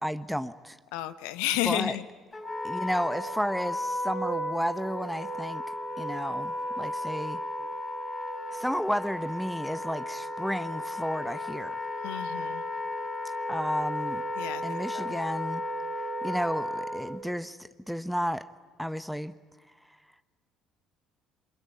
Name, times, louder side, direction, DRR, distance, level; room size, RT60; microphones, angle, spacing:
voice 1, 0.0-0.8 1.6-2.0 2.6-5.6 6.0-7.4 8.5-11.7 13.5-14.2 14.6-15.6 16.2-18.5 18.8-19.3, equal, ahead, 13 dB, 0.9 m, -32 dB
voice 2, 0.9-2.0 12.0-12.6 14.4-15.1, left 14 dB, 70° left, 13 dB, 1.0 m, -32 dB
Wind instrument woodwind instrument, 2.3-17.2, left 1 dB, 25° left, 5.6 m, -34 dB
26.5 x 23.0 x 9.8 m, 1.4 s
figure-of-eight pair, 55°, 0 cm